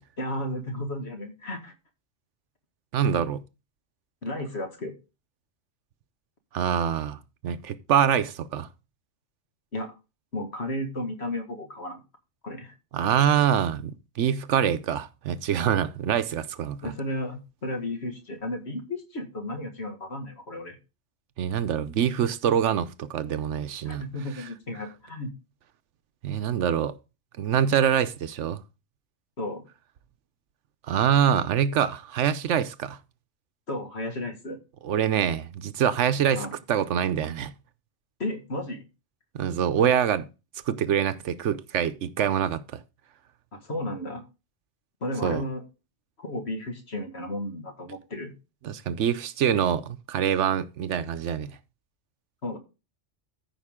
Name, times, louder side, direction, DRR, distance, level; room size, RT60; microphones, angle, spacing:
voice 1, 0.2-1.7 4.2-4.9 9.7-9.9 10.3-12.0 12.4-12.7 16.8-20.8 23.8-25.3 29.4-29.6 33.7-34.6 36.3-36.5 38.2-38.9 43.5-44.2 45.0-45.6 46.2-48.3 52.4-52.6, left 1 dB, 65° left, 2.2 m, -33 dB
voice 2, 2.9-3.4 6.5-8.7 12.9-16.9 21.4-24.1 24.4-24.5 26.2-26.9 27.4-28.6 30.9-33.0 34.8-37.5 39.3-40.3 40.7-42.8 45.2-45.4 48.6-51.5, right 9 dB, 80° right, 1.0 m, -25 dB
14.0 x 5.6 x 3.6 m
omnidirectional pair, 1.2 m